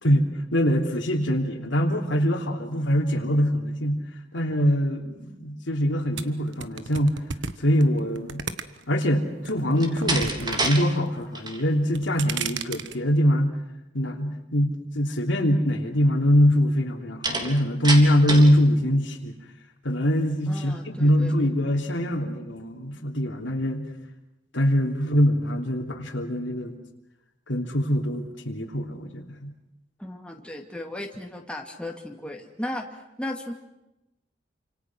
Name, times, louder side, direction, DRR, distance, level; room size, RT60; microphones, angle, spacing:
voice 1, 0.0-4.0 4.3-7.2 7.6-8.4 8.9-13.5 13.9-19.3 19.8-23.9 24.5-26.8 27.5-29.5, equal, 75° left, 3 dB, 3.3 m, -23 dB
sound 1, 6.2-9.0 9.4-10.7 11.0-11.5 11.8-13.0, right 6 dB, 75° right, 1.4 m, -33 dB
Slam, 9.7-10.8 11.2-11.6 17.2-18.6, right 2 dB, 25° right, 3.5 m, -27 dB
voice 2, 20.5-21.5 30.0-33.5, left 1 dB, 5° left, 2 dB, 2.5 m, -36 dB
29.0 x 26.5 x 6.3 m, 0.93 s
head